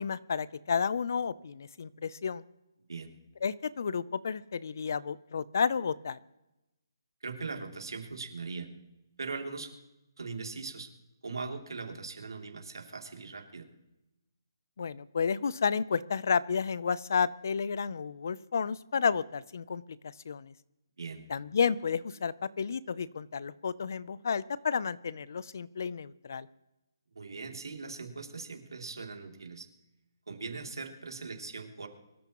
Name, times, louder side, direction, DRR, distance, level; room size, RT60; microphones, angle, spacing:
voice 1, 0.0-2.4 3.4-6.2 14.8-20.5 21.3-26.5, left 6 dB, 45° left, 18 dB, 0.5 m, -31 dB
voice 2, 7.2-8.7 9.2-9.7 10.2-10.9 11.2-13.7 21.0-21.3 27.1-29.7 30.3-31.9, right 4 dB, 85° right, 3 dB, 2.9 m, -40 dB
24.0 x 13.0 x 3.1 m, 0.96 s
hypercardioid pair, 175°, 2 cm